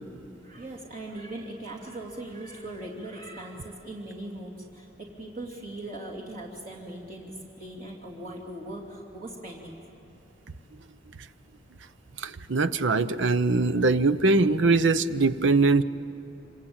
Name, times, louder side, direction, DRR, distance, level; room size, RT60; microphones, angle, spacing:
voice 1, 0.4-9.8, right 1 dB, 50° right, -3 dB, 2.8 m, -40 dB
voice 2, 12.2-15.8, right 3 dB, 70° right, 14 dB, 0.8 m, -22 dB
26.0 x 25.5 x 8.8 m, 2.9 s
head